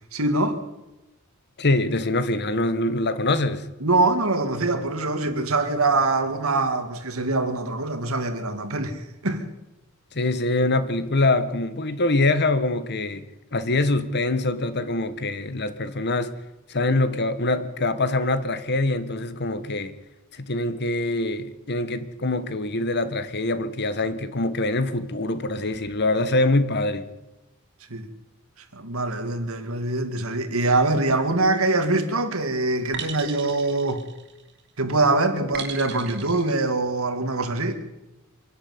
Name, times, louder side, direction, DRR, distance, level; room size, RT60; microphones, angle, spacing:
voice 1, 0.1-0.6 3.8-9.5 27.9-28.1 28.7-34.0 34.8-37.8, right 2 dB, 80° right, 2.5 m, -24 dB
voice 2, 1.6-3.7 10.1-13.3 13.5-16.3 16.7-19.9 20.3-27.1, left 2 dB, 50° left, 1.5 m, -24 dB
sound 1, 31.4-31.9 32.9-34.6 35.5-36.5, right 6 dB, 55° right, 3.1 m, -37 dB
25.5 x 11.5 x 9.7 m
head